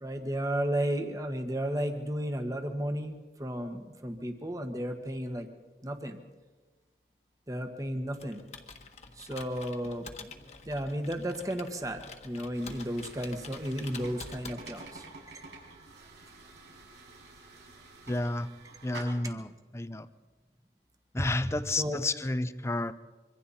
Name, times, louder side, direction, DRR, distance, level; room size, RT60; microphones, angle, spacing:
voice 1, 0.0-5.5 5.8-6.2 7.5-8.4 9.2-10.3 10.7-15.1 19.2-19.4 21.2-22.0, equal, 20° right, 6 dB, 1.5 m, -34 dB
Computer keyboard, 8.1-15.0, left 4 dB, 40° left, 1.5 m, -47 dB
sound 1, 12.5-19.0, right 3 dB, 85° right, 6.1 m, -49 dB
voice 2, 18.1-18.5 18.8-20.1 21.1-22.9, left 2 dB, 15° left, 13 dB, 0.6 m, -31 dB
26.0 x 24.0 x 4.3 m, 1.3 s
head